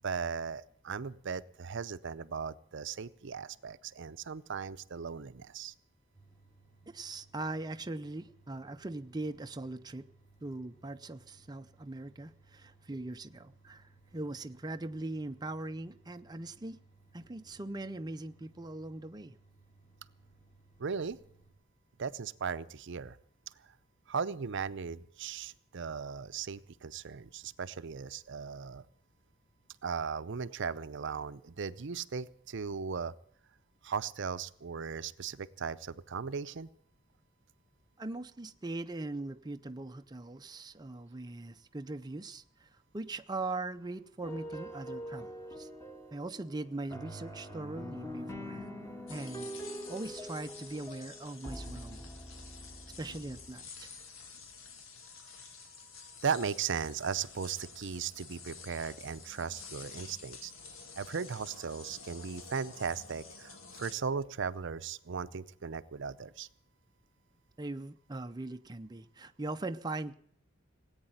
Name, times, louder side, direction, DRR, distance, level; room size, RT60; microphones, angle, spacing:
voice 1, 0.0-5.7 20.8-21.2 22.0-23.2 24.1-28.8 29.8-33.1 33.8-36.7 56.2-60.5 61.0-66.5, right 6 dB, 65° right, 13 dB, 0.6 m, -37 dB
sound 1, 6.1-21.5, right 3 dB, 35° left, 4.8 m, -63 dB
voice 2, 6.9-10.1 10.4-16.8 17.1-19.4 38.0-45.7 46.1-48.7 49.1-49.5 49.9-52.1 53.0-53.9 67.6-70.1, right 2 dB, 20° right, 7 dB, 0.6 m, -40 dB
sound 2, 44.2-53.5, equal, 15° left, 1.6 m, -44 dB
sound 3, 49.1-63.9, left 5 dB, 75° left, 1.9 m, -50 dB
18.0 x 8.9 x 9.0 m, 0.63 s
head